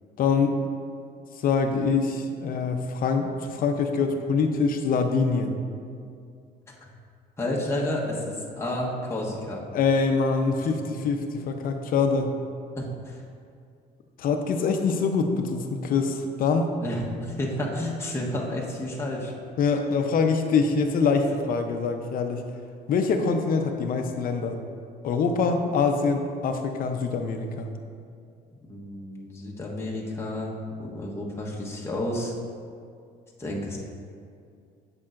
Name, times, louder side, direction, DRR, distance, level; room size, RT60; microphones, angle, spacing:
voice 1, 0.2-0.6 1.4-5.6 9.7-12.4 14.2-16.7 19.6-22.4 22.9-24.6 25.0-27.7, left 4 dB, 55° left, 6 dB, 0.7 m, -24 dB
voice 2, 7.4-9.6 12.8-13.2 16.8-19.3 28.7-30.5 30.8-32.3 33.4-33.8, left 1 dB, 15° left, -3 dB, 1.1 m, -31 dB
8.6 x 6.7 x 2.5 m, 2.3 s
cardioid pair, 110°, 17 cm